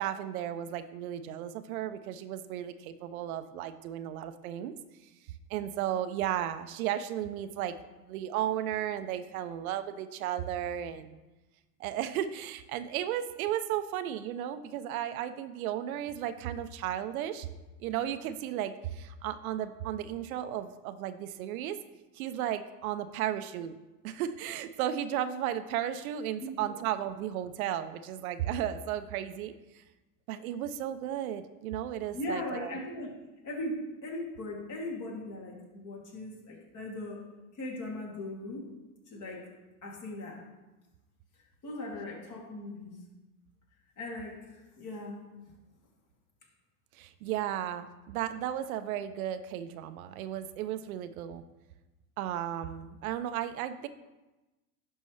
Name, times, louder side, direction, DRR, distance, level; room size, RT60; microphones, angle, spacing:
voice 1, 0.0-4.7 5.5-7.7 8.1-11.2 11.8-17.5 17.8-21.8 22.1-23.8 24.0-29.5 30.3-32.7 46.9-51.4 52.2-53.9, right 11 dB, 70° right, 11 dB, 0.7 m, -34 dB
voice 2, 32.1-33.1 33.4-37.2 37.5-38.7 39.1-39.5 39.8-40.4 41.6-43.0 44.0-45.2, left 1 dB, 40° left, -2 dB, 2.7 m, -39 dB
11.0 x 5.3 x 3.3 m, 1.1 s
hypercardioid pair, 90°, 44 cm